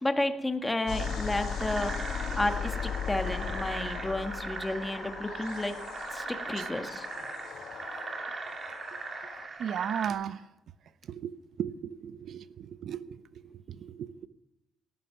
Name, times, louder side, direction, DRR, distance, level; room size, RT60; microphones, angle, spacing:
voice 1, 0.0-2.1 2.3-5.7 6.1-7.1, left 1 dB, 15° left, 6 dB, 1.6 m, -32 dB
sound 1, 0.9-9.5, left 8 dB, 75° left, 1.0 m, -38 dB
sound 2, 1.0-10.1, right 4 dB, 40° right, 2.8 m, -39 dB
voice 2, 9.6-10.4 11.0-14.3, right 9 dB, 65° right, 14 dB, 0.9 m, -36 dB
18.0 x 11.5 x 5.9 m, 0.92 s
cardioid pair, 90°, 0 cm